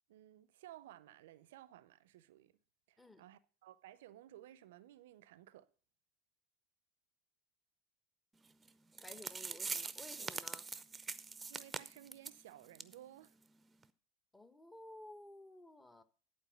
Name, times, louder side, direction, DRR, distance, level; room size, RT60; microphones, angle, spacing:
voice 1, 0.1-2.5 2.9-5.7 11.5-13.3, right 13 dB, 70° right, 0.5 m, -57 dB
sound 1, 8.7-8.8 9.0-12.4 12.7-12.9 13.2-13.3 13.8-13.9, right 5 dB, 20° right, 0.6 m, -43 dB
voice 2, 9.0-10.7 14.3-16.0, left 1 dB, 15° left, 1.1 m, -55 dB
11.0 x 4.5 x 7.1 m
hypercardioid pair, 80°, 0 cm